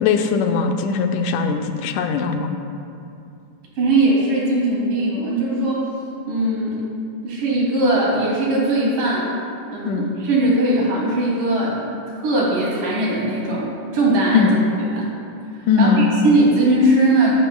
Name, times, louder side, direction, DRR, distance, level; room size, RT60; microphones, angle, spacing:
voice 1, 0.0-2.5 9.9-10.1 14.3-14.5 15.7-16.2, left 5 dB, 80° left, 5 dB, 2.0 m, -19 dB
voice 2, 3.8-5.8 6.3-6.9 7.2-9.3 9.7-15.1 15.5-17.3, right 1 dB, 85° right, -5 dB, 4.2 m, -20 dB
14.5 x 11.5 x 2.2 m, 2.5 s
omnidirectional pair, 3.7 m